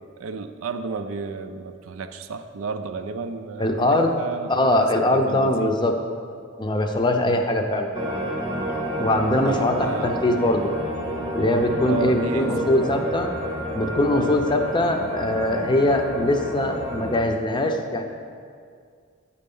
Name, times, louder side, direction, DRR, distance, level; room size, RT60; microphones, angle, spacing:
voice 1, 0.2-5.8 9.5-10.2 11.9-12.9 14.1-14.3, right 4 dB, 85° right, 9 dB, 0.4 m, -32 dB
voice 2, 3.6-4.1 4.5-5.9 6.6-7.9 9.0-10.7 11.3-13.3 13.7-18.1, left 1 dB, 20° left, 4 dB, 0.5 m, -22 dB
sound 1, 7.9-17.3, equal, 25° right, 0.8 m, -30 dB
8.9 x 4.2 x 5.4 m, 2.2 s
head